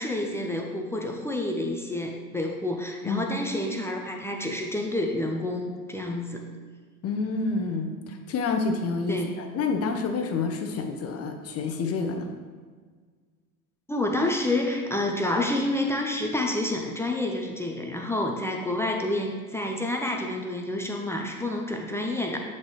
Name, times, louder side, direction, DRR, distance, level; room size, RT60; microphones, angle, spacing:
voice 1, 0.0-6.5 9.1-9.3 13.9-22.4, left 1 dB, 5° left, 1 dB, 0.4 m, -29 dB
voice 2, 7.0-12.3, left 4 dB, 35° left, 5 dB, 0.8 m, -28 dB
7.4 x 4.1 x 3.2 m, 1.5 s
hypercardioid pair, 85°, 45 cm